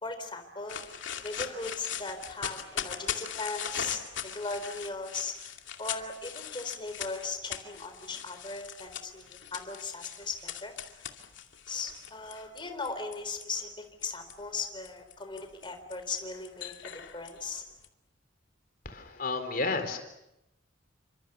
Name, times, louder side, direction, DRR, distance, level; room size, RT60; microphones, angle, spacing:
voice 1, 0.0-0.8 1.2-5.3 5.8-10.7 11.7-17.6, left 4 dB, 25° left, 7 dB, 4.0 m, -38 dB
sound 1, 0.7-13.4 14.0-17.9, left 8 dB, 70° left, 2.5 m, -40 dB
voice 2, 18.8-20.0, left 3 dB, 45° left, 7 dB, 4.0 m, -31 dB
29.5 x 25.5 x 6.9 m, 0.89 s
head